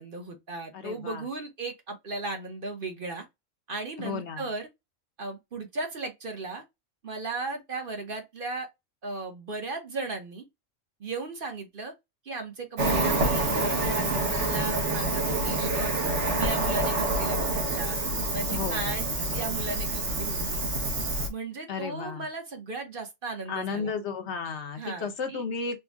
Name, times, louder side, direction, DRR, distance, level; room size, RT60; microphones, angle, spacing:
voice 1, 0.0-3.2 3.7-4.7 5.2-6.6 7.0-8.7 9.0-10.4 11.0-11.9 12.2-15.9 16.3-18.0 18.3-20.7 21.3-23.9 24.8-25.4, right 3 dB, 45° right, 1.1 m, -36 dB
voice 2, 0.7-1.3 4.0-4.5 16.7-17.0 18.5-18.9 21.7-22.2 23.5-25.8, left 5 dB, 65° left, 1.0 m, -34 dB
Cricket, 12.8-21.3, right 2 dB, 65° right, 1.4 m, -27 dB
4.4 x 2.3 x 3.4 m
omnidirectional pair, 1.3 m